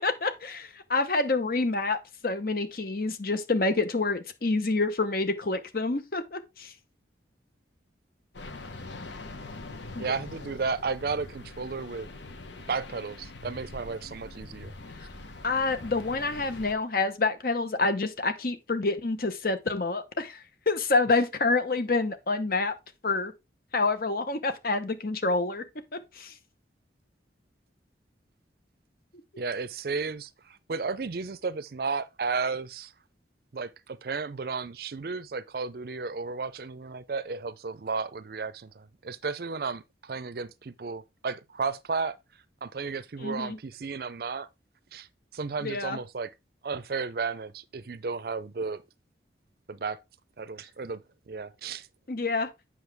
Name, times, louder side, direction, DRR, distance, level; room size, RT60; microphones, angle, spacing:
voice 1, 0.0-6.7 9.9-10.2 15.4-22.8 23.0-23.3 23.7-25.6 25.9-26.3 43.2-43.6 45.6-46.0 52.1-52.5, left 3 dB, 50° left, 0.9 m, -27 dB
sound 1, 8.3-16.7, left 2 dB, 80° left, 1.0 m, -43 dB
voice 2, 10.0-12.1 12.7-14.7 29.4-32.9 33.5-42.2 42.6-44.5 44.9-45.1 45.3-46.3 46.6-48.8 49.7-50.0 50.4-51.9, right 4 dB, 55° right, 0.5 m, -33 dB
8.0 x 6.2 x 3.4 m
head